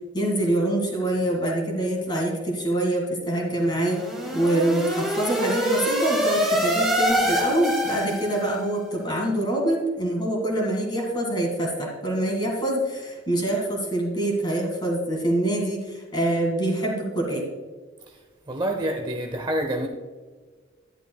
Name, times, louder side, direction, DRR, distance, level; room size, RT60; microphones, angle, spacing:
voice 1, 0.1-4.0 4.3-17.4, right 1 dB, 20° left, 0 dB, 2.1 m, -25 dB
sound 1, 3.6-8.6, equal, ahead, 2.0 m, -25 dB
voice 2, 18.5-19.9, right 1 dB, 20° right, 3 dB, 0.6 m, -27 dB
11.0 x 10.5 x 2.3 m, 1.4 s
head